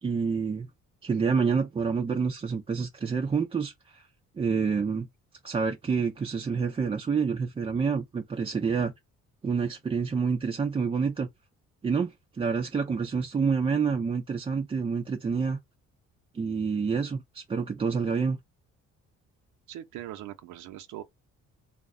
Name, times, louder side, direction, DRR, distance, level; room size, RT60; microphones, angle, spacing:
voice 1, 0.0-0.7 1.0-4.0 4.4-5.1 5.4-8.9 9.4-11.3 11.8-15.6 16.3-18.4, right 5 dB, 20° right, 0.3 m, -28 dB
voice 2, 19.7-21.0, right 12 dB, 85° right, 0.5 m, -41 dB
2.3 x 2.0 x 3.5 m
cardioid pair, 90°, 30 cm